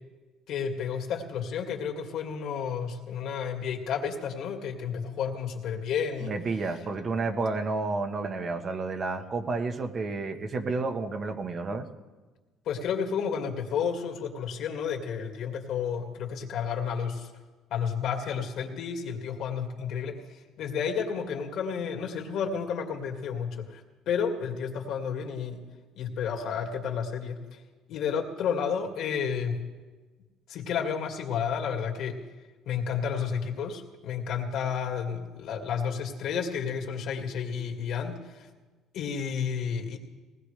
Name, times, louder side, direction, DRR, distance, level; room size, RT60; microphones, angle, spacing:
voice 1, 0.5-6.4 12.7-17.3 17.7-25.6 26.0-27.6 27.9-29.6 30.5-32.2 32.7-38.5 38.9-40.0, left 7 dB, 65° left, 2 dB, 2.3 m, -31 dB
voice 2, 6.2-11.9, right 3 dB, 40° right, 6 dB, 1.3 m, -31 dB
20.0 x 19.0 x 3.4 m, 1.3 s
supercardioid pair, 90°, 0 cm